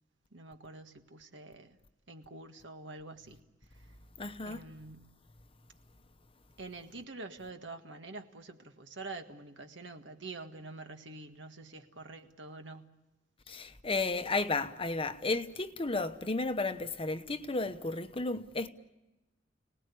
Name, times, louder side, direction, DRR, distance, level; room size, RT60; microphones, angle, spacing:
voice 1, 0.3-1.8 2.1-3.4 3.7-3.9 4.4-5.1 6.6-12.9, right 3 dB, 70° right, 1.8 m, -46 dB
voice 2, 4.2-4.6 13.5-18.7, left 3 dB, 30° left, 1.0 m, -33 dB
30.0 x 19.0 x 8.4 m
head